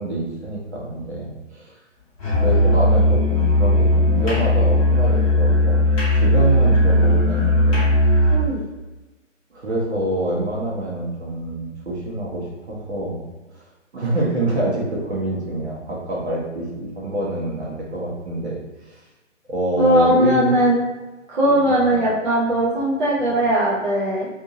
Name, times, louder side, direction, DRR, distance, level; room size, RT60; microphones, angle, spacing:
voice 1, 0.0-1.8 2.4-7.9 9.5-13.2 13.5-13.6 13.9-19.0 19.5-20.6 21.4-22.0 23.2-23.3, right 1 dB, 55° right, -4 dB, 1.0 m, -26 dB
Musical instrument, 2.2-8.5, left 1 dB, 25° left, 0.9 m, -17 dB
voice 2, 19.8-20.8 21.3-24.3, right 1 dB, 40° right, -8 dB, 0.7 m, -19 dB
2.7 x 2.5 x 2.7 m, 1.1 s
figure-of-eight pair, 135°, 39 cm